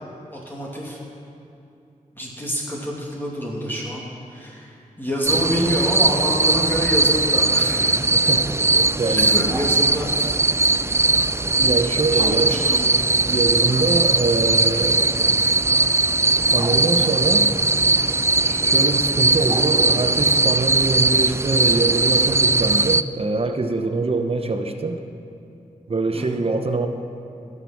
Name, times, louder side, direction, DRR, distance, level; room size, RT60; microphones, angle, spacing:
voice 1, 0.3-1.0 2.1-4.0 4.3-8.1 9.2-10.3 12.2-13.0 26.1-26.4, equal, 15° left, -4 dB, 2.7 m, -27 dB
sound 1, 5.3-23.0, right 3 dB, 20° right, 0.3 m, -19 dB
voice 2, 9.0-9.4 11.6-12.6 13.3-15.1 16.5-17.5 18.4-25.0 25.9-26.9, right 3 dB, 40° right, 5 dB, 1.0 m, -23 dB
13.0 x 8.3 x 6.0 m, 2.7 s
cardioid pair, 40°, 15 cm